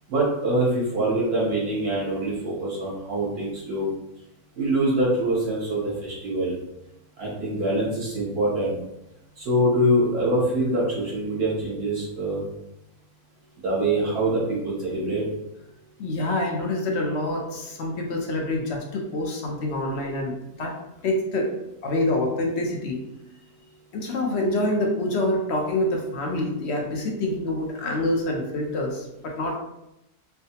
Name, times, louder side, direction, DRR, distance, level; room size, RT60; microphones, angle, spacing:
voice 1, 0.1-3.9 4.6-6.5 7.2-8.8 9.4-12.4 13.6-15.2, right 1 dB, 75° right, -6 dB, 2.1 m, -24 dB
voice 2, 16.0-20.7 21.0-21.5 21.8-23.0 23.9-29.6, left 1 dB, 55° left, 0 dB, 0.8 m, -26 dB
4.6 x 2.2 x 2.8 m, 0.88 s
omnidirectional pair, 1.6 m